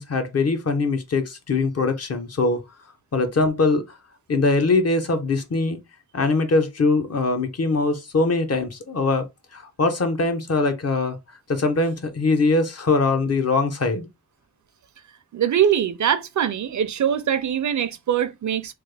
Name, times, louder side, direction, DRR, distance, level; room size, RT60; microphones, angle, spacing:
voice 1, 0.0-2.6 3.1-4.0 4.3-5.8 6.1-9.3 9.5-11.2 11.5-14.1, left 3 dB, 50° left, 0.7 m, -22 dB
voice 2, 15.3-18.7, right 9 dB, 65° right, 0.5 m, -22 dB
3.2 x 2.2 x 3.2 m
wide cardioid pair, 105°, 31 cm